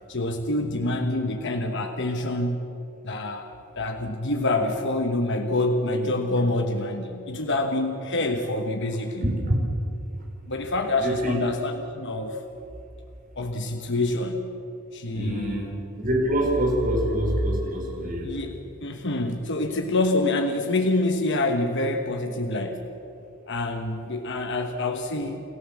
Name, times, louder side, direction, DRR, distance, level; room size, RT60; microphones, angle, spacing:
voice 1, 0.1-2.7 3.0-3.5 3.8-9.3 10.5-12.4 13.4-14.5 14.9-15.7 18.0-22.9 23.5-25.4, left 2 dB, 55° left, 5 dB, 1.3 m, -26 dB
voice 2, 9.2-9.5 11.0-11.4 15.1-15.7 16.0-18.3, right 1 dB, 40° right, -1 dB, 4.9 m, -25 dB
28.0 x 14.0 x 7.4 m, 2.8 s
head